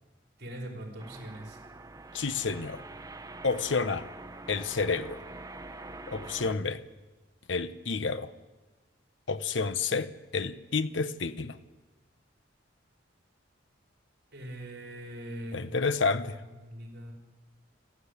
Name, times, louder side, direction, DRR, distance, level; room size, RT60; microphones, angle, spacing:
voice 1, 0.4-1.6 14.3-15.7 16.5-17.1, right 1 dB, 60° right, 5.0 m, -41 dB
sound 1, 1.0-6.5, right 2 dB, 20° right, 0.9 m, -45 dB
voice 2, 2.1-2.8 3.4-4.1 4.5-5.2 6.1-6.8 7.5-8.3 9.3-11.6 15.5-16.4, left 4 dB, 80° left, 1.0 m, -30 dB
28.0 x 12.0 x 8.3 m
head